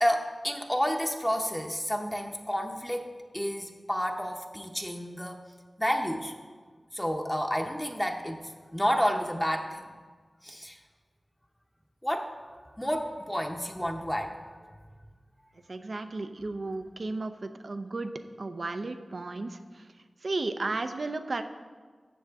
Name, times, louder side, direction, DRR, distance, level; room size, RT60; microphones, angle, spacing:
voice 1, 0.0-5.4 5.8-6.3 6.9-9.8 10.4-10.8 12.0-12.3 12.8-14.4, equal, 10° left, 2 dB, 0.8 m, -30 dB
voice 2, 15.7-18.1 18.4-19.9 20.2-21.4, right 3 dB, 65° right, 9 dB, 0.6 m, -34 dB
13.0 x 7.4 x 3.6 m, 1.5 s
wide cardioid pair, 55°, 0 cm